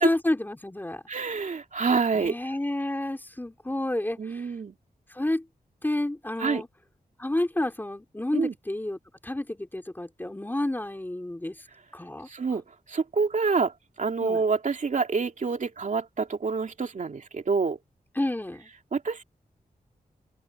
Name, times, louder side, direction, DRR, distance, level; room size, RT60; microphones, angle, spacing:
voice 1, 0.0-1.0 2.1-4.4 5.1-5.4 5.8-6.7 7.2-11.5 11.9-12.3 14.2-14.4 18.2-18.7, left 1 dB, 10° left, 3.9 m, -30 dB
voice 2, 1.1-2.5 4.2-4.7 6.4-6.6 8.3-8.5 12.3-12.6 12.9-13.7 14.0-17.8 18.9-19.2, right 4 dB, 55° right, 3.0 m, -27 dB
wide cardioid pair, 120°, 16 cm